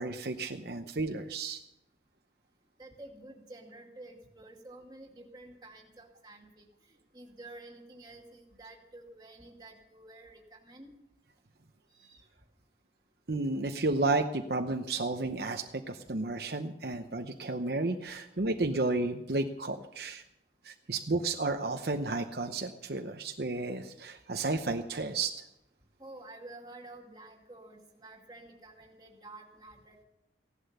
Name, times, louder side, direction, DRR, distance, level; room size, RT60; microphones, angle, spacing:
voice 1, 0.0-1.6 13.3-20.2 20.6-25.3, right 3 dB, 60° right, 5 dB, 0.8 m, -32 dB
voice 2, 2.8-6.7 7.1-10.9 11.9-12.3 26.0-30.0, right 2 dB, 25° right, 0 dB, 2.4 m, -50 dB
16.5 x 11.5 x 6.8 m, 0.85 s
head